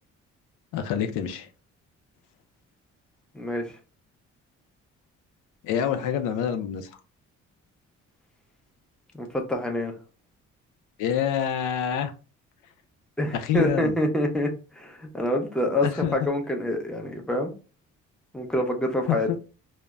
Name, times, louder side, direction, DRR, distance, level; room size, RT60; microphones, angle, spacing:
voice 1, 0.7-1.5 5.6-6.9 11.0-12.1 13.3-14.0 15.8-16.3 19.1-19.3, left 9 dB, 90° left, 0.5 m, -27 dB
voice 2, 3.3-3.7 9.1-9.9 13.2-14.5 14.8-15.9 16.1-17.5 18.3-19.3, left 1 dB, 5° left, 0.6 m, -26 dB
2.1 x 2.0 x 3.4 m
cardioid pair, 90°, 30 cm